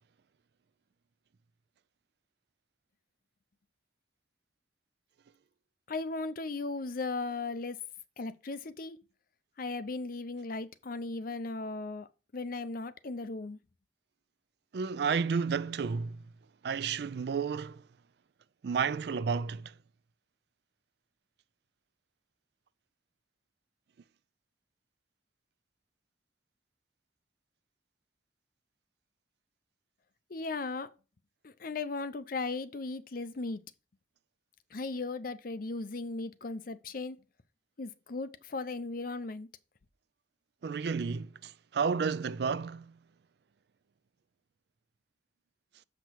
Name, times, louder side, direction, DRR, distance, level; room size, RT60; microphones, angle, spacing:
voice 1, 5.9-7.8 8.2-9.0 9.6-12.1 12.3-13.6 30.3-30.9 31.4-33.6 34.7-37.2 37.8-39.5, left 3 dB, 55° left, 0.6 m, -37 dB
voice 2, 14.7-16.2 16.6-17.8 18.6-19.7 40.6-43.0, right 5 dB, 65° right, 0.4 m, -31 dB
6.8 x 6.0 x 4.6 m
head